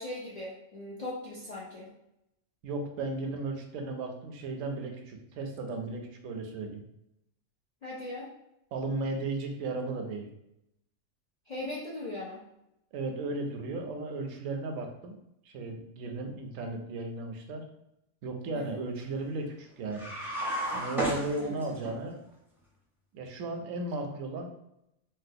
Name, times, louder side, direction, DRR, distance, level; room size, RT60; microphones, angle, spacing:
voice 1, 0.0-1.9 7.8-8.3 11.5-12.4 18.5-18.8 21.4-21.6, left 1 dB, 75° left, -5 dB, 0.3 m, -39 dB
voice 2, 2.6-6.8 8.7-10.3 12.9-15.2 15.5-17.6 18.2-20.1 20.7-22.2 23.1-24.5, right 3 dB, 85° right, 4 dB, 1.0 m, -35 dB
sound 1, 19.9-21.9, right 1 dB, 5° right, 0.4 m, -33 dB
3.6 x 2.3 x 2.6 m, 0.84 s
omnidirectional pair, 1.4 m